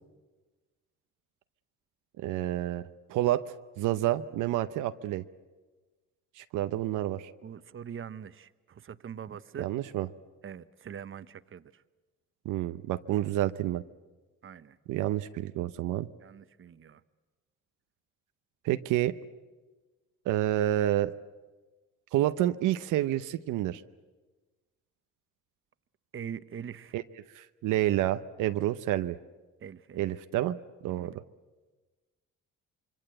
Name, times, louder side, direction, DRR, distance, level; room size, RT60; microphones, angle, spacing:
voice 1, 2.2-2.8 3.1-3.4 3.8-5.2 6.4-7.3 9.6-10.1 12.4-13.8 14.9-16.1 18.6-19.1 20.3-21.1 22.1-23.8 26.9-27.0 27.3-29.2 30.0-30.6 30.8-31.1, right 13 dB, 90° right, 0.8 m, -29 dB
voice 2, 7.4-9.7 10.4-11.8 14.4-14.8 16.2-17.0 26.1-26.9 29.6-30.0 30.9-31.2, right 8 dB, 45° right, 0.9 m, -43 dB
26.0 x 23.5 x 7.8 m
cardioid pair, 90°, 30 cm